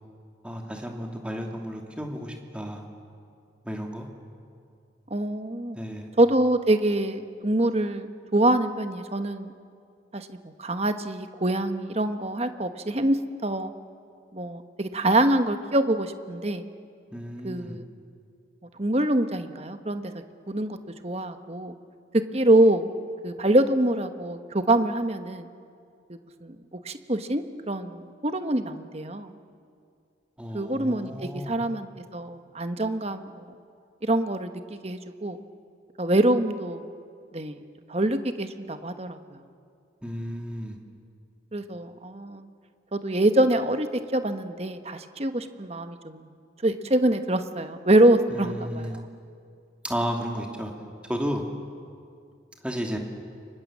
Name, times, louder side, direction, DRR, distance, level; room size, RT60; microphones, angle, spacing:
voice 1, 0.4-2.8 3.6-4.1 5.7-6.1 17.1-17.8 30.4-31.6 40.0-40.8 48.3-49.0 49.8-50.7 51.1-51.4 52.6-53.0, equal, 5° right, 1 dB, 2.7 m, -33 dB
voice 2, 5.1-5.8 6.2-9.5 10.1-13.7 14.3-16.6 17.4-17.8 18.8-20.8 21.0-21.8 22.3-22.9 23.2-25.5 26.1-26.6 26.8-29.3 30.5-33.5 34.0-35.4 36.0-36.9 37.3-37.6 37.9-39.4 41.5-42.4 42.9-46.3 46.6-49.0, right 1 dB, 35° right, 8 dB, 1.2 m, -25 dB
30.0 x 24.5 x 7.4 m, 2.4 s
head